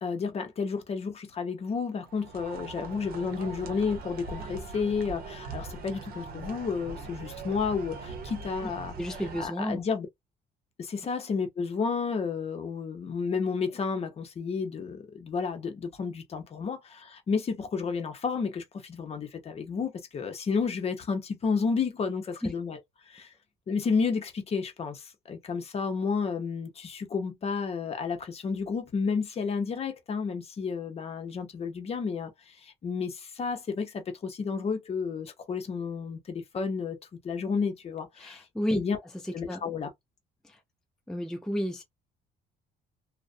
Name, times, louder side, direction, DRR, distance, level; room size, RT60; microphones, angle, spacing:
voice 1, 0.0-8.9 9.4-10.1 10.8-22.8 23.1-23.3 23.7-37.0 37.2-38.4 38.7-39.0 39.3-39.9, left 5 dB, 35° left, 0.7 m, -31 dB
sound 1, 2.0-9.5, right 4 dB, 60° right, 0.8 m, -41 dB
voice 2, 9.0-9.8 22.4-22.5 38.2-38.8 39.5-39.6 41.1-41.8, equal, 5° left, 0.5 m, -31 dB
2.4 x 2.1 x 2.4 m
cardioid pair, 110°, 17 cm